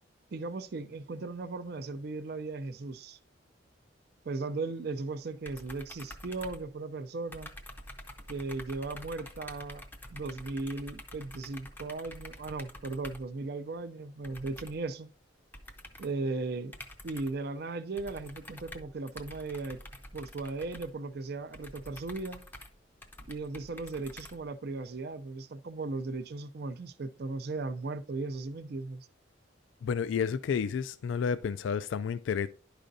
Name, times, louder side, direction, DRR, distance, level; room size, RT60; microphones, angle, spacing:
voice 1, 0.3-3.2 4.3-7.5 8.3-9.8 10.1-15.1 16.0-16.8 17.0-19.8 20.1-22.4 23.3-29.1, right 3 dB, 55° right, 0.5 m, -37 dB
sound 1, 5.5-7.0 7.3-13.3 14.2-14.9 15.5-16.2 16.7-17.5 18.0-24.8, left 1 dB, 10° left, 0.5 m, -48 dB
voice 2, 29.8-32.5, left 6 dB, 75° left, 0.3 m, -31 dB
11.0 x 5.0 x 2.6 m
head